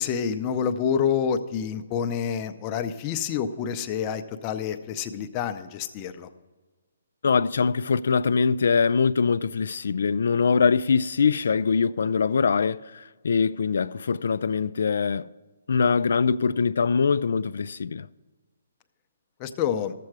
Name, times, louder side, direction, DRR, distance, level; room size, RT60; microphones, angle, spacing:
voice 1, 0.0-6.3 19.4-19.9, left 7 dB, 25° left, 0.6 m, -28 dB
voice 2, 7.2-15.3 15.7-18.1, left 5 dB, 70° left, 0.3 m, -23 dB
13.0 x 7.6 x 4.7 m
hypercardioid pair, 165°, 0 cm